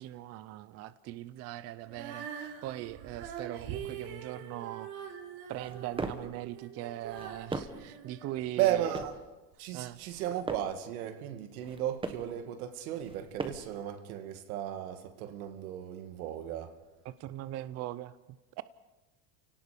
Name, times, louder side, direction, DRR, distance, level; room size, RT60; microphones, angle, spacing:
voice 1, 0.0-5.0 5.5-8.9 9.7-10.0 17.1-18.6, right 14 dB, 35° right, 0.6 m, -41 dB
Female singing, 1.8-8.9 9.5-9.6, right 8 dB, 60° right, 3.9 m, -44 dB
sound 1, 5.5-6.3 7.0-7.9 8.6-9.2 9.9-10.8 11.5-12.3 13.0-13.8, right 3 dB, 10° right, 1.2 m, -40 dB
voice 2, 8.6-9.2 9.6-16.7, right 11 dB, 85° right, 2.2 m, -34 dB
29.5 x 18.0 x 5.2 m
cardioid pair, 150°, 42 cm